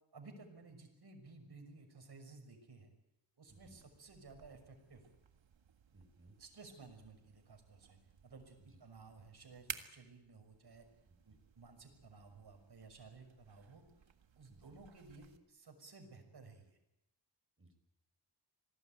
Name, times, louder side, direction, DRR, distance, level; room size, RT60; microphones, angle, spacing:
voice 1, 0.1-2.9 3.4-5.1 6.4-8.0 8.2-10.8 11.2-14.0 14.3-16.8, right 3 dB, 60° right, 5 dB, 6.2 m, -56 dB
sound 1, 3.5-15.4, right 8 dB, 85° right, 1.9 m, -56 dB
voice 2, 5.9-6.3 8.7-8.8 14.5-14.8 17.6-17.7, right 2 dB, 30° right, 6 dB, 5.4 m, -62 dB
27.0 x 19.0 x 9.1 m, 0.89 s
wide cardioid pair, 100°, 44 cm